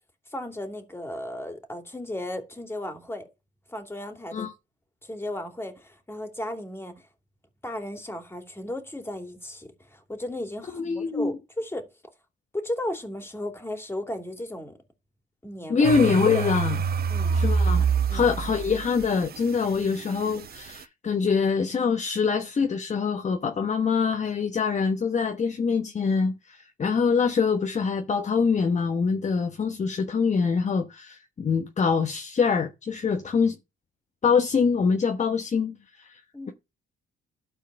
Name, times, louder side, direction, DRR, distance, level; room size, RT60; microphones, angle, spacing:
voice 1, 0.3-3.3 3.7-4.5 5.0-6.9 7.6-11.9 12.5-14.8 15.4-15.9 16.3-16.5 17.1-17.4 18.1-18.3 36.3-36.5, left 1 dB, 10° left, 2.9 m, -35 dB
voice 2, 10.7-11.3 15.7-16.8 17.3-33.6 34.2-36.2, left 5 dB, 35° left, 1.0 m, -24 dB
sound 1, 15.8-20.8, right 6 dB, 50° right, 0.8 m, -26 dB
12.5 x 4.6 x 6.8 m
cardioid pair, 90°, 20 cm